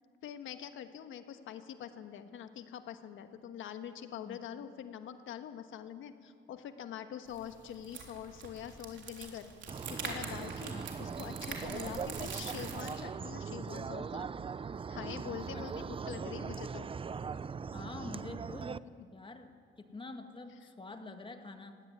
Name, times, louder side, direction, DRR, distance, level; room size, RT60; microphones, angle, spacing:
voice 1, 0.2-9.5 9.9-14.3 14.9-16.9 19.0-19.1, left 9 dB, 80° left, 9 dB, 1.4 m, -44 dB
sound 1, 7.2-12.9, right 5 dB, 70° right, 3.7 m, -45 dB
sound 2, 9.7-18.8, right 5 dB, 25° right, 0.5 m, -40 dB
voice 2, 10.7-11.0 11.8-12.0 15.5-15.9 17.7-18.9 19.1-21.8, left 3 dB, 25° left, 6 dB, 1.8 m, -47 dB
17.5 x 16.5 x 9.7 m, 2.3 s
cardioid pair, 90°, 20 cm